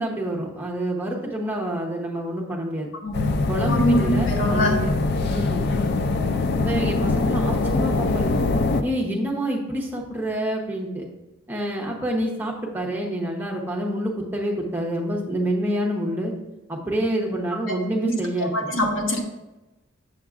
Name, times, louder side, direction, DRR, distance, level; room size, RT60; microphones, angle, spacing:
voice 1, 0.0-2.9 3.5-4.9 5.2-5.7 6.6-8.3 8.8-11.1 11.5-16.3 16.7-18.7, right 1 dB, 10° right, -2 dB, 0.9 m, -27 dB
voice 2, 3.0-4.7 17.7-18.1 18.4-19.2, left 1 dB, 75° left, 2 dB, 1.0 m, -24 dB
sound 1, 3.1-8.8, left 3 dB, 55° left, 0.4 m, -23 dB
7.0 x 6.2 x 2.4 m, 1.0 s
head